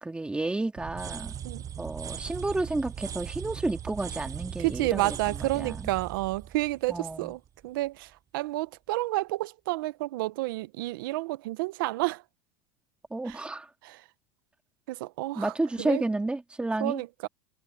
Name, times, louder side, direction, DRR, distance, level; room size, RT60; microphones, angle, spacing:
voice 1, 0.0-1.3 1.8-5.9 6.9-7.3 13.1-13.7 15.3-17.0, right 2 dB, 10° right, 2.7 m, -31 dB
sound 1, 0.8-7.6, right 9 dB, 30° right, 0.8 m, -39 dB
voice 2, 4.6-12.2 13.2-13.4 13.8-14.0 14.9-16.0 16.8-17.3, right 19 dB, 85° right, 1.0 m, -30 dB
supercardioid pair, 115°, 11 cm